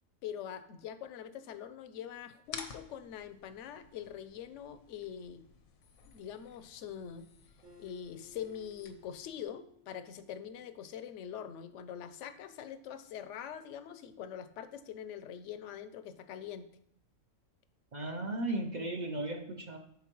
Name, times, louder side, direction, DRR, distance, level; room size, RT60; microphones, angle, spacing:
voice 1, 0.2-5.4 6.0-7.3 7.8-16.7, left 9 dB, 70° left, 11 dB, 0.9 m, -44 dB
sound 1, 2.4-9.4, left 6 dB, 90° left, 1.2 m, -52 dB
Acoustic guitar, 7.6-11.1, left 6 dB, 65° right, 2.8 m, -60 dB
voice 2, 17.9-19.8, right 2 dB, 45° right, 2 dB, 0.6 m, -36 dB
10.5 x 4.3 x 3.0 m, 0.71 s
omnidirectional pair, 1.4 m